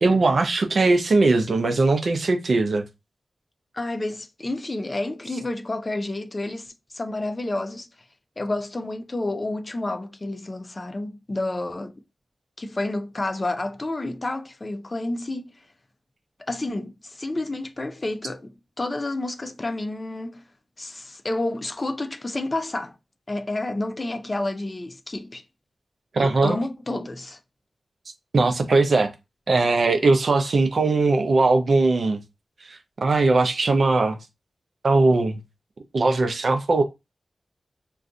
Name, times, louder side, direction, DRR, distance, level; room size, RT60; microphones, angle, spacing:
voice 1, 0.0-2.8 26.1-26.6 28.3-29.1 29.5-32.2 33.0-34.2 34.8-35.4 35.9-36.8, right 3 dB, 70° right, 0.5 m, -20 dB
voice 2, 3.7-7.9 8.4-11.9 12.6-15.5 16.5-20.4 20.8-23.0 23.3-25.4 26.2-27.4, left 2 dB, 40° left, 0.5 m, -30 dB
2.5 x 2.3 x 3.7 m
cardioid pair, 50°, 0 cm